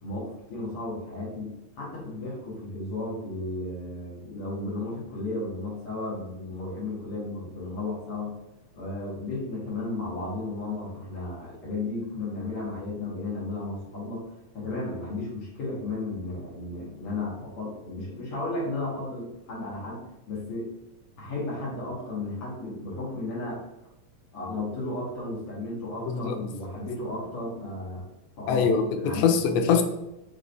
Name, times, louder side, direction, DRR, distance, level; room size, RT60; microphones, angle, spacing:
voice 1, 0.0-8.3 8.7-20.7 21.2-23.6 24.3-28.1 28.4-28.7 29.0-29.3, left 2 dB, 55° left, -6 dB, 1.7 m, -34 dB
voice 2, 28.5-29.8, left 6 dB, 85° left, 5 dB, 2.4 m, -23 dB
6.4 x 3.1 x 2.6 m, 0.93 s
omnidirectional pair, 4.1 m